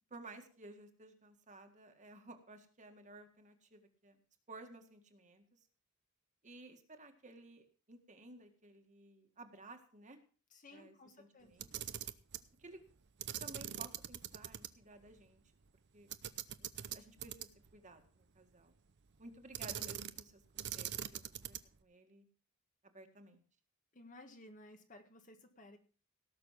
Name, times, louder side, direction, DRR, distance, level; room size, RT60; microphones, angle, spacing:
voice 1, 0.1-4.2 4.5-5.6 6.4-10.2 10.7-11.9 12.6-12.8 13.4-15.4 15.9-16.1 16.6-18.8 19.2-22.3 22.8-23.4, right 2 dB, 35° right, 5 dB, 1.8 m, -55 dB
voice 2, 10.5-11.6 23.9-25.8, left 2 dB, 35° left, 6 dB, 1.6 m, -57 dB
Camera, 11.5-12.5 13.2-14.7 15.0-15.1 16.1-17.7 19.5-20.3 20.6-21.8, right 11 dB, 55° right, 0.7 m, -43 dB
17.5 x 6.7 x 5.8 m, 0.39 s
head